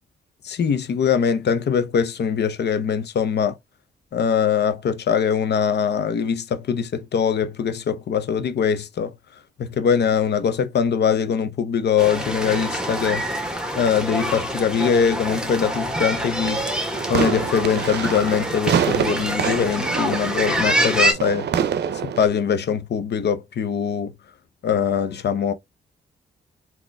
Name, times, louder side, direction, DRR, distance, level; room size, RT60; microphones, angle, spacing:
voice 1, 0.4-3.6 4.1-9.1 9.6-13.2 13.8-16.6 17.1-21.5 22.0-24.1 24.6-25.5, left 7 dB, 65° left, 0.7 m, -22 dB
sound 1, 12.0-21.1, equal, 5° right, 1.4 m, -26 dB
sound 2, 16.9-22.3, right 8 dB, 65° right, 0.6 m, -26 dB
3.8 x 2.9 x 3.4 m
supercardioid pair, 55°, 19 cm